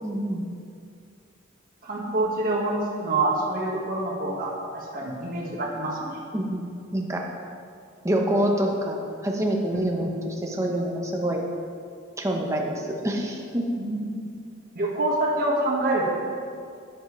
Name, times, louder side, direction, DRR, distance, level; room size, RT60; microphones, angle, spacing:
voice 1, 0.0-0.4 6.3-7.2 8.0-11.4 12.2-13.6, right 1 dB, 15° right, 0 dB, 1.0 m, -26 dB
voice 2, 1.8-6.2 9.7-10.1 13.8-14.1 14.7-16.0, right 2 dB, 50° right, -4 dB, 1.6 m, -26 dB
12.0 x 9.2 x 3.3 m, 2.3 s
head